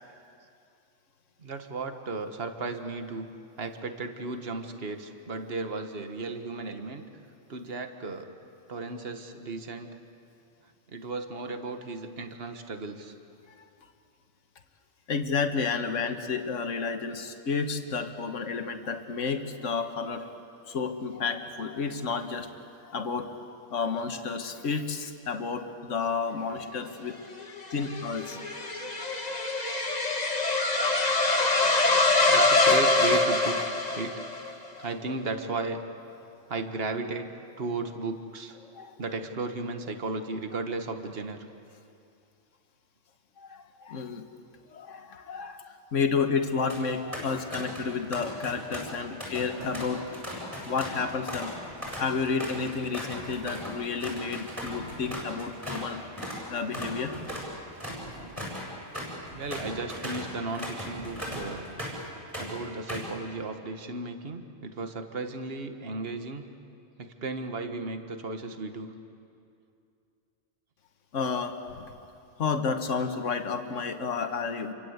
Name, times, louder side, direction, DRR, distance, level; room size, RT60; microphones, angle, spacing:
voice 1, 1.4-3.3 3.6-7.0 7.5-8.3 8.7-9.9 10.9-13.1 28.6-30.0 32.3-34.2 34.5-35.8 36.5-37.3 37.6-38.6 39.0-41.4 48.9-49.2 59.3-61.7 62.4-66.5 67.0-68.9, right 3 dB, 50° right, 7 dB, 1.7 m, -35 dB
voice 2, 15.1-20.3 20.7-22.5 22.8-27.2 27.7-28.4 34.7-34.9 38.7-38.9 43.4-44.2 44.7-50.0 50.6-51.5 52.0-56.0 56.5-57.1 71.1-72.0 72.4-74.7, left 5 dB, 70° left, 6 dB, 1.7 m, -31 dB
sound 1, 27.4-34.5, left 3 dB, 30° left, 1.7 m, -24 dB
sound 2, 46.7-46.8 47.1-47.9 48.1-55.9 56.2-56.4 56.7-62.1 62.3-63.1, equal, 10° right, 7.9 m, -38 dB
sound 3, 49.6-50.3 51.3-52.2 53.2-53.9 54.5-55.3 55.7-55.9 56.8-57.5 57.9-58.5 59.2-59.7 60.1-60.4 60.9-61.7, right 1 dB, 70° right, 6.7 m, -46 dB
28.5 x 24.0 x 8.1 m, 2.5 s
omnidirectional pair, 1.3 m